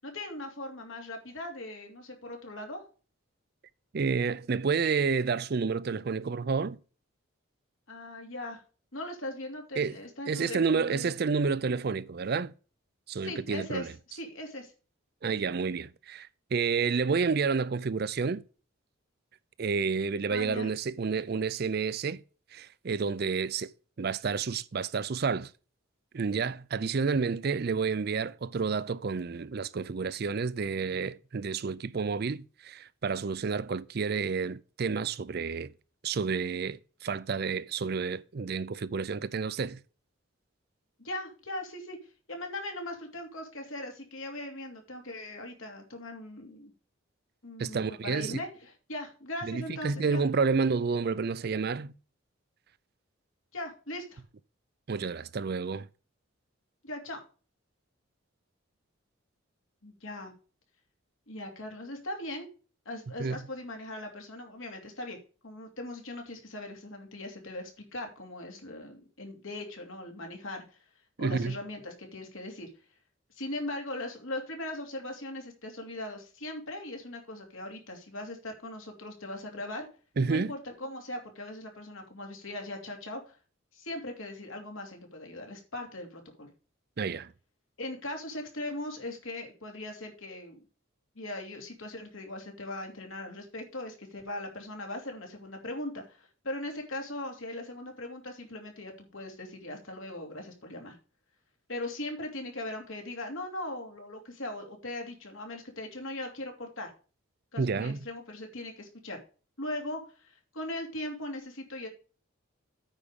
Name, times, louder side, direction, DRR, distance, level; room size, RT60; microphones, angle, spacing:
voice 1, 0.0-2.8 7.9-8.6 8.9-11.1 13.2-14.7 20.3-20.7 41.0-42.0 42.3-46.7 47.4-50.2 53.5-54.2 56.8-57.2 59.8-60.3 61.3-62.5 62.8-65.2 65.4-70.8 71.2-72.7 73.4-79.9 80.2-83.4 83.7-86.5 87.8-90.6 91.1-101.0 101.7-106.9 107.5-109.2 109.6-111.9, left 1 dB, 75° left, 2.8 m, -39 dB
voice 2, 3.9-6.8 9.8-10.0 10.3-12.5 13.1-13.9 15.2-18.4 19.6-22.2 22.5-23.7 24.0-25.5 26.1-35.7 36.0-39.8 47.6-48.4 49.4-51.9 54.9-55.9 63.2-63.4 71.2-71.6 80.2-80.5 87.0-87.3 107.6-108.0, right 5 dB, 50° right, 0.4 m, -30 dB
9.0 x 5.0 x 6.7 m
head